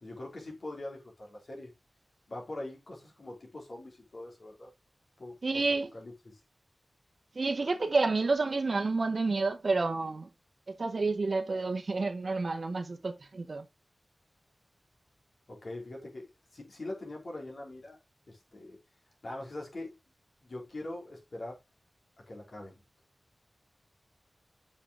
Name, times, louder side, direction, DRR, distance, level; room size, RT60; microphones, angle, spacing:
voice 1, 0.0-1.7 2.3-4.7 5.2-5.4 5.9-6.4 15.5-16.3 16.5-18.0 18.3-18.8 19.2-20.0 20.4-21.6 22.3-22.8, left 2 dB, 55° left, 3.4 m, -42 dB
voice 2, 5.4-5.9 7.3-10.3 10.7-13.6, right 3 dB, 55° right, 1.1 m, -29 dB
6.7 x 5.5 x 3.6 m
wide cardioid pair, 90°, 0 cm